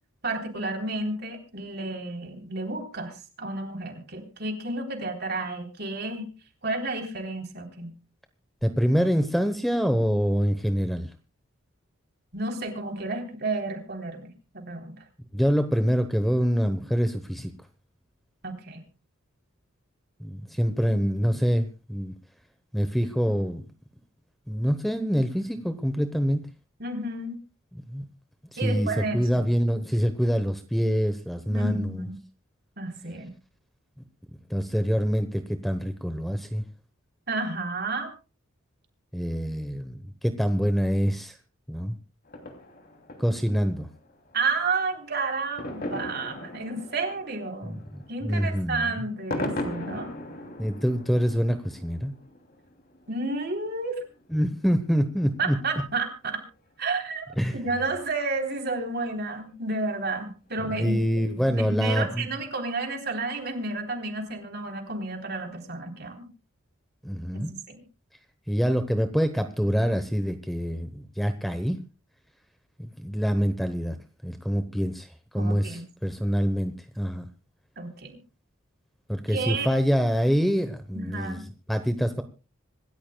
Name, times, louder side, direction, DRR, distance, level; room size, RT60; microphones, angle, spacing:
voice 1, 0.2-6.3 6.6-7.9 12.3-14.9 18.4-18.8 26.8-27.4 28.6-29.4 31.5-32.2 32.8-33.3 37.3-38.1 44.3-47.8 48.1-50.1 53.1-54.0 55.4-56.4 56.8-61.0 61.3-66.3 67.3-67.8 75.4-75.9 77.8-78.2 79.3-79.7 80.9-81.4, right 3 dB, 50° right, 4 dB, 3.5 m, -31 dB
voice 2, 8.6-11.1 15.3-17.5 20.2-22.1 22.7-23.7 24.5-26.4 27.7-28.0 28.5-28.9 29.1-32.0 34.5-36.6 39.1-41.4 41.7-42.0 43.2-43.9 47.6-47.8 48.2-49.0 50.6-52.1 54.3-55.6 57.4-57.6 60.7-62.3 67.0-67.5 68.5-71.8 72.8-74.0 74.2-75.1 75.3-77.3 79.1-82.2, equal, ahead, 8 dB, 0.9 m, -25 dB
sound 1, 42.3-55.0 55.4-55.5 55.7-55.8 56.0-56.1 56.5-56.6 57.4-57.5 58.0-58.1 59.4-59.8 60.1-60.2 60.5-60.6 61.0-61.1, left 1 dB, 45° left, 2.8 m, -39 dB
26.0 x 14.0 x 2.3 m, 0.31 s
head